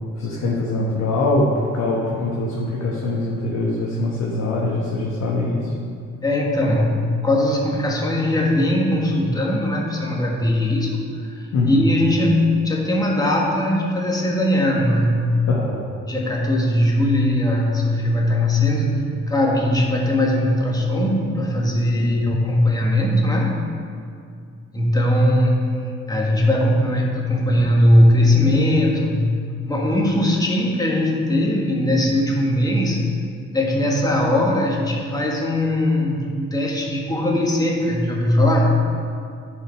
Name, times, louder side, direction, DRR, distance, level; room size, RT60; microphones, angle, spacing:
voice 1, 0.2-5.7 11.5-11.8 15.5-15.9 21.9-22.1, left 2 dB, 60° left, -4 dB, 1.3 m, -23 dB
voice 2, 6.2-11.0 11.2-15.2 16.1-23.6 24.7-29.3 29.6-33.0 33.5-38.7, left 1 dB, 10° left, -2 dB, 1.6 m, -20 dB
10.0 x 5.1 x 4.7 m, 2.3 s
cardioid pair, 90°, 30 cm